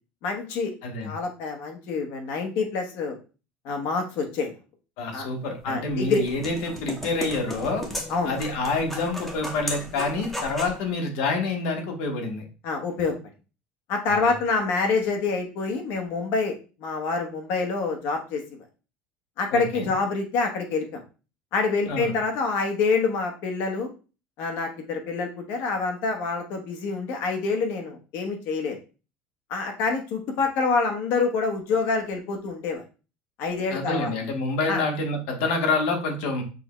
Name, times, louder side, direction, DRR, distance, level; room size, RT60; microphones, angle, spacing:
voice 1, 0.2-0.7 1.0-3.2 3.6-4.5 5.1-5.3 5.6-6.2 8.1-8.3 12.6-13.1 13.9-18.4 19.4-21.0 21.5-23.9 24.4-28.8 29.5-32.8 33.4-34.1 34.7-34.8, left 4 dB, 55° left, 4 dB, 1.0 m, -26 dB
voice 2, 5.0-7.8 8.2-12.4 14.1-14.3 19.5-19.9 21.9-22.1 33.7-36.4, left 3 dB, 75° left, 2 dB, 1.2 m, -27 dB
sound 1, 5.6-10.8, equal, 5° left, 0.8 m, -36 dB
6.1 x 2.2 x 3.0 m, 0.34 s
cardioid pair, 165°, 4 cm